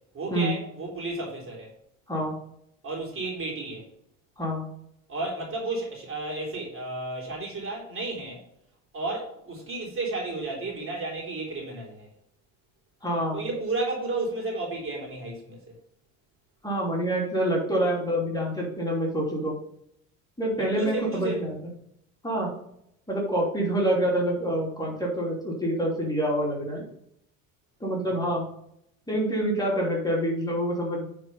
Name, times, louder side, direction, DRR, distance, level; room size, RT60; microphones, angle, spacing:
voice 1, 0.1-1.7 2.8-3.9 5.1-8.4 8.9-12.1 13.3-15.7 20.6-21.4, right 2 dB, 30° right, -1 dB, 3.5 m, -32 dB
voice 2, 13.0-13.4 16.6-19.6 20.4-21.6 22.2-22.5 23.1-26.8 27.8-28.5 29.1-31.1, right 1 dB, 10° left, -3 dB, 3.0 m, -26 dB
9.5 x 4.5 x 5.5 m, 0.74 s
figure-of-eight pair, 65°, 40 cm